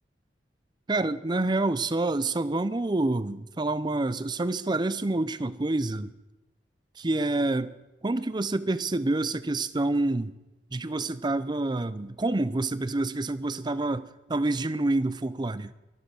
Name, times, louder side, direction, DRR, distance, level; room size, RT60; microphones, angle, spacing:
voice 1, 0.9-6.1 7.0-7.7 8.0-10.3 10.7-15.7, right 2 dB, 25° right, 16 dB, 0.5 m, -27 dB
23.0 x 7.7 x 6.5 m, 1.0 s
head